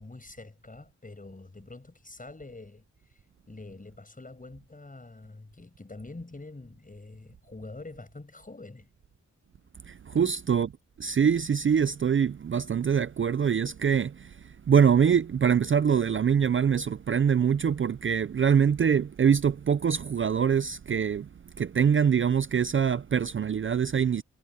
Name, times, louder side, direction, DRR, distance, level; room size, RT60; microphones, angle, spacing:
voice 1, 0.0-2.8 3.1-3.2 3.5-8.9 10.1-10.4, left 2 dB, 25° left, 7.8 m, -45 dB
voice 2, 9.9-10.7 11.0-14.4 14.7-21.3 21.6-24.2, right 7 dB, 45° right, 0.4 m, -24 dB
wide cardioid pair, 105°, 30 cm